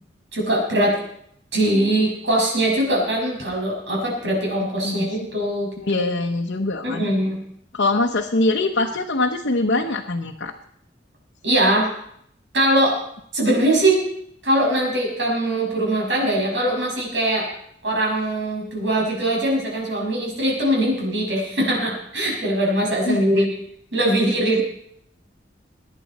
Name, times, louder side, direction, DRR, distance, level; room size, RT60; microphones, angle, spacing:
voice 1, 0.3-0.9 1.5-6.1 6.8-7.4 11.4-11.9 12.5-13.0 13.3-14.0 14.4-17.5 17.8-23.5 23.9-24.6, right 1 dB, 80° right, -1 dB, 6.2 m, -21 dB
voice 2, 5.8-7.1 7.7-10.5 23.1-23.4, left 2 dB, 85° left, 1 dB, 1.0 m, -23 dB
22.0 x 10.0 x 4.2 m, 0.69 s
head